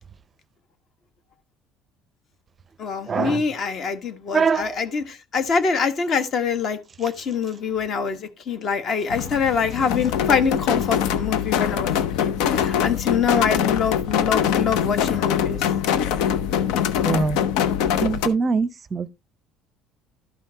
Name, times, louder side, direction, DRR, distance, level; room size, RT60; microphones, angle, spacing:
voice 1, 2.8-11.9 12.2-15.7, left 6 dB, 40° left, 1.3 m, -25 dB
voice 2, 4.3-4.6 17.0-17.4 18.0-19.1, right 5 dB, 25° right, 0.6 m, -22 dB
sound 1, 9.1-18.3, left 9 dB, 80° left, 0.8 m, -23 dB
12.5 x 5.6 x 2.8 m
cardioid pair, 140°, 0 cm